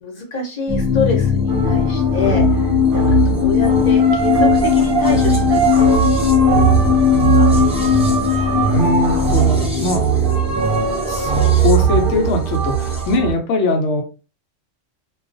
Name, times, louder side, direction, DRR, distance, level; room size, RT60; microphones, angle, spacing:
voice 1, 0.0-5.7 6.8-6.9 7.3-7.5, left 3 dB, 40° left, 0 dB, 0.7 m, -26 dB
sound 1, 0.7-13.1, left 8 dB, 10° right, 0.3 m, -18 dB
sound 2, 1.5-13.3, right 7 dB, 55° right, 0.8 m, -19 dB
voice 2, 8.2-10.1 10.9-14.0, left 2 dB, 75° left, 3 dB, 0.9 m, -21 dB
2.3 x 2.3 x 2.5 m, 0.33 s
omnidirectional pair, 1.3 m